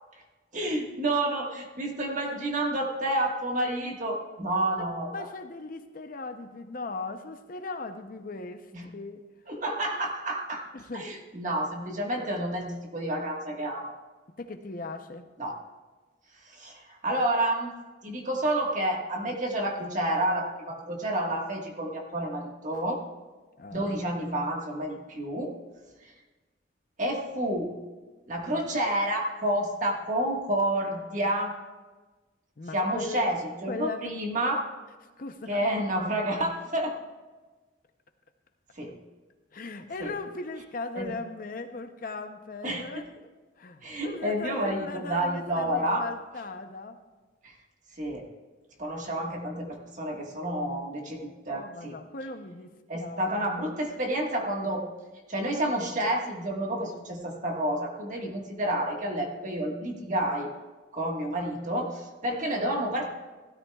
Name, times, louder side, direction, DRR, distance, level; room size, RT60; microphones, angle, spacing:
voice 1, 0.5-5.3 8.7-8.8 9.5-10.6 10.9-13.9 15.4-15.5 16.4-17.7 18.0-23.0 23.7-25.5 26.0-26.1 27.0-27.8 28.3-31.5 32.7-34.6 35.5-37.0 38.7-39.0 40.0-40.1 41.0-41.1 42.6-42.8 43.8-46.0 47.4-47.6 48.0-48.2 48.8-51.9 52.9-54.8 55.3-60.5 60.9-63.1, right 1 dB, 40° right, 1 dB, 1.5 m, -29 dB
voice 2, 5.1-9.3 10.7-11.1 14.4-15.3 23.6-24.0 32.6-33.3 33.7-34.2 35.2-35.7 39.5-43.1 43.6-47.0 51.5-53.3, left 3 dB, 45° left, 8 dB, 0.7 m, -38 dB
16.0 x 13.0 x 2.3 m, 1.3 s
head